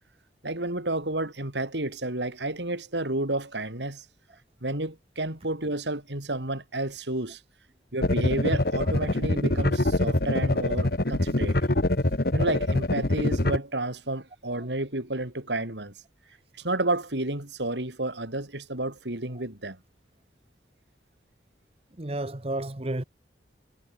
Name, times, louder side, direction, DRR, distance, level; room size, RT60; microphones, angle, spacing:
voice 1, 0.4-4.0 4.6-7.4 7.9-11.6 12.3-15.9 16.5-19.8, right 2 dB, 85° right, 4.6 m, -31 dB
sound 1, 8.0-13.6, left 1 dB, 60° left, 1.7 m, -24 dB
voice 2, 22.0-23.0, right 1 dB, 35° right, 1.3 m, -31 dB
head